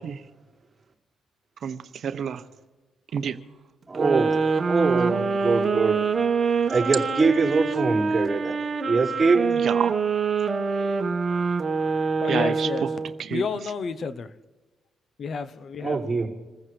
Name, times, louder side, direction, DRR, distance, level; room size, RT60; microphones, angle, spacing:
voice 1, 1.6-2.4 3.1-3.4 9.5-10.0 12.3-12.7 13.2-13.4, right 8 dB, 60° right, 0.8 m, -28 dB
voice 2, 3.9-4.3 4.6-6.0 6.7-9.5 15.8-16.3, right 4 dB, 20° right, 5.4 m, -23 dB
sound 1, 3.9-13.2, right 5 dB, 40° right, 1.4 m, -25 dB
voice 3, 12.2-12.9 13.3-14.3 15.2-16.0, left 5 dB, 50° left, 0.9 m, -30 dB
27.0 x 14.5 x 3.4 m
cardioid pair, 90°, 0 cm